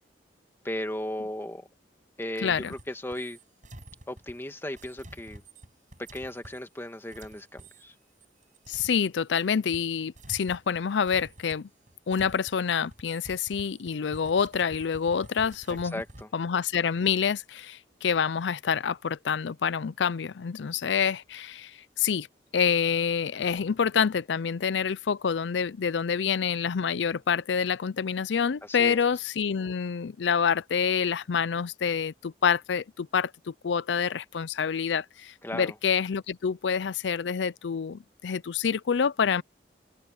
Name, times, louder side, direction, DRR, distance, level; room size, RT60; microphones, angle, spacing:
voice 1, 0.6-1.7 2.2-3.4 4.1-5.4 6.1-7.9 15.7-16.3 28.6-29.0 35.4-35.7, left 1 dB, 15° left, 1.8 m, -36 dB
voice 2, 2.4-2.7 8.7-11.7 12.1-16.0 16.3-22.3 22.5-39.4, left 6 dB, 80° left, 0.5 m, -27 dB
sound 1, 2.5-9.5 9.7-16.2, right 1 dB, 45° right, 5.7 m, -50 dB
open air
head